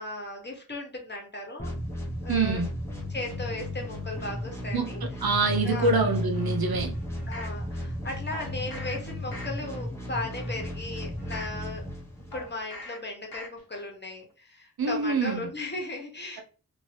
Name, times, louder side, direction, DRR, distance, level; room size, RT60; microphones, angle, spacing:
voice 1, 0.0-2.6 3.1-5.0 5.6-6.0 7.3-11.8 12.3-16.4, left 2 dB, 30° left, 1.1 m, -36 dB
sound 1, 1.6-12.5, left 1 dB, 5° left, 0.9 m, -34 dB
voice 2, 2.3-2.7 4.7-4.9 5.2-7.0 14.8-15.5, right 3 dB, 80° right, 0.7 m, -25 dB
sound 2, 6.3-7.6 8.3-9.0 9.3-9.8 10.3-11.6 12.3-13.0 13.3-13.8 14.2-14.3, left 2 dB, 75° left, 0.9 m, -44 dB
2.8 x 2.6 x 3.2 m
wide cardioid pair, 65°, 36 cm